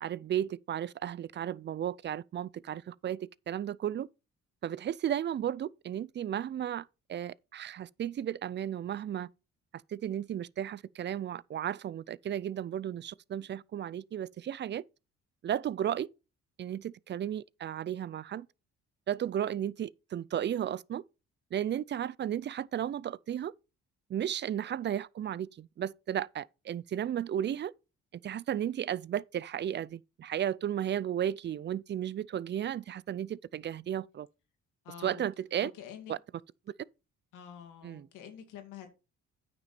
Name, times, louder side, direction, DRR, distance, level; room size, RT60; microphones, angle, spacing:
voice 1, 0.0-4.1 4.6-9.3 9.9-14.8 15.4-16.1 16.6-18.5 19.1-21.0 21.5-23.5 24.1-27.7 28.2-34.3 35.0-35.7 36.1-36.2 37.8-38.1, right 10 dB, 40° right, 0.4 m, -34 dB
voice 2, 34.8-35.3 35.6-36.1 37.3-38.9, left 9 dB, 90° left, 2.3 m, -47 dB
9.2 x 6.0 x 4.2 m
cardioid pair, 90°, 30 cm